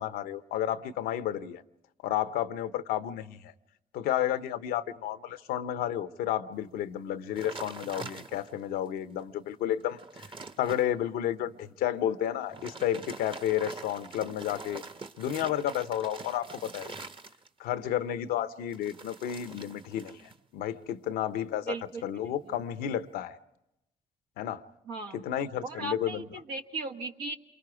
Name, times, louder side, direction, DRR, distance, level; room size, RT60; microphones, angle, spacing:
voice 1, 0.0-1.6 2.0-3.5 3.9-10.2 10.6-14.8 15.2-16.9 17.6-20.2 20.5-21.8 22.0-23.4 24.4-24.7 25.1-26.2, left 11 dB, 90° left, 0.7 m, -31 dB
sound 1, 7.4-8.7 9.2-9.3 9.7-10.9 12.4-17.7 18.7-20.4 20.7-21.1, right 3 dB, 35° right, 1.0 m, -44 dB
voice 2, 21.7-22.3 24.8-25.2 25.6-27.4, right 3 dB, 85° right, 1.3 m, -37 dB
28.0 x 23.0 x 4.8 m
supercardioid pair, 55°, 15 cm